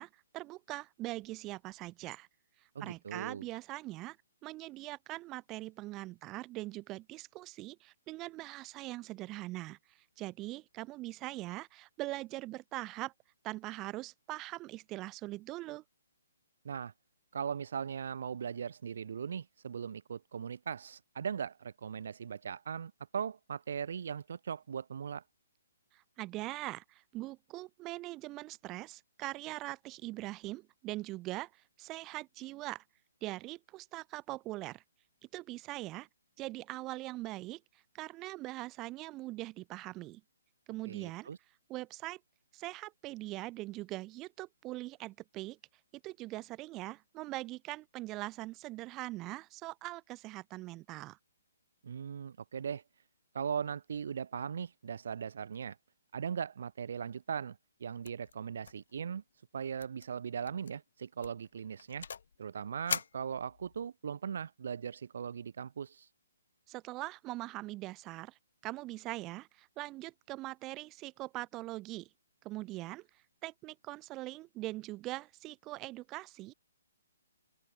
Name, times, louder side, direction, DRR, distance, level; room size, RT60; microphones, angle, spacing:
voice 1, 0.0-2.3 2.8-4.2 4.4-13.1 13.4-15.8 25.9-32.8 33.2-34.8 35.3-36.1 36.4-37.6 37.9-40.2 40.7-41.3 41.7-42.2 42.5-45.6 46.0-51.2 66.7-72.1 72.4-73.1 73.4-76.5, right 18 dB, 15° right, 3.1 m, -42 dB
voice 2, 2.7-3.5 16.6-16.9 17.3-25.2 40.9-41.4 51.8-52.8 53.3-55.8 56.1-59.2 59.5-62.1 62.4-66.1, right 7 dB, 50° right, 3.1 m, -39 dB
sound 1, 58.0-58.3 58.6-58.9 59.2-59.3 59.8-60.1 60.5-60.7 61.2-62.3 62.9-63.9, left 7 dB, 55° left, 2.6 m, -41 dB
hypercardioid pair, 175°, 0 cm